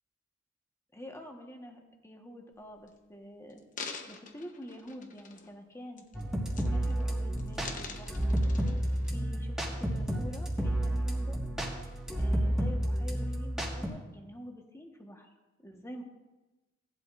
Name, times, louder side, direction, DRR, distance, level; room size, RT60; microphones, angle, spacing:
voice 1, 0.9-3.6 4.1-6.0 6.5-8.8 9.1-11.4 12.2-15.3 15.6-16.0, equal, 15° left, 2 dB, 1.2 m, -47 dB
sound 1, 2.5-2.9 3.5-5.6 6.0-6.2 6.5-7.1 7.4-9.1 9.7-9.8, left 5 dB, 45° left, 0.9 m, -45 dB
sound 2, 6.1-13.9, right 1 dB, 5° right, 1.6 m, -31 dB
17.5 x 11.5 x 2.5 m, 1.1 s
head